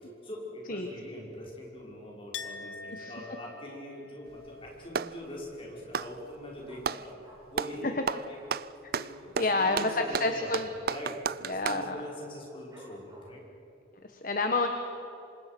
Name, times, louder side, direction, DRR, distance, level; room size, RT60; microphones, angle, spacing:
voice 1, 0.2-7.1 7.5-8.4 9.0-13.4, left 1 dB, 30° left, -3 dB, 6.0 m, -43 dB
Chink clink, 2.3-7.9 8.1-9.0, left 5 dB, 90° left, 1.4 m, -48 dB
Clapping, 4.3-5.2 5.8-7.1 7.5-7.8 8.1-11.9, right 6 dB, 55° right, 0.5 m, -33 dB
Dog, 5.2-5.6 5.9-6.0 6.2-7.7 7.9-8.1 8.3-8.6 9.0-10.4 10.7-10.9 11.2-11.6 12.0-12.1 12.7-13.5 14.0-14.1, right 1 dB, 20° right, 7.3 m, -54 dB
voice 2, 9.4-10.7 11.4-11.9 14.1-14.7, left 2 dB, 45° left, 5 dB, 1.4 m, -29 dB
27.5 x 26.0 x 6.2 m, 2.9 s
head